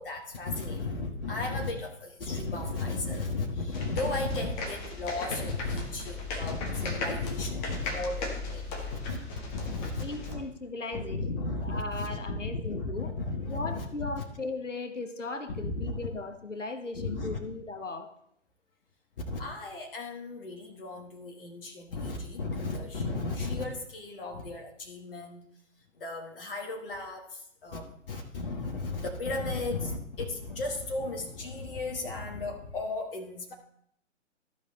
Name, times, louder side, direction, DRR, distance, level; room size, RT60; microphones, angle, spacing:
voice 1, 0.0-9.2 9.5-10.4 10.9-14.2 15.5-15.9 16.9-17.4 19.2-25.5 26.0-33.5, left 3 dB, 45° left, 2 dB, 1.5 m, -35 dB
sound 1, 3.7-10.3, left 3 dB, 15° left, 0.8 m, -37 dB
voice 2, 10.0-13.1 13.5-18.1, left 3 dB, 80° left, 8 dB, 1.2 m, -37 dB
14.0 x 5.1 x 4.0 m, 0.70 s
figure-of-eight pair, 130°, 37 cm